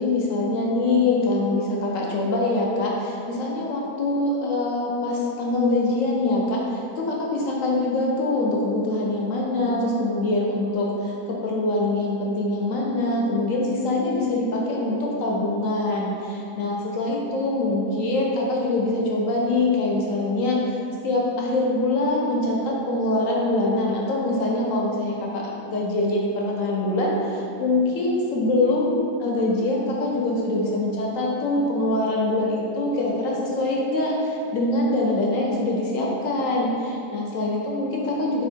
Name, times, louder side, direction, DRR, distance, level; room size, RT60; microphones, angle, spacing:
voice 1, 0.0-20.8 21.0-38.4, left 2 dB, 65° left, -3 dB, 0.9 m, -24 dB
4.3 x 2.5 x 4.4 m, 2.7 s
omnidirectional pair, 1.7 m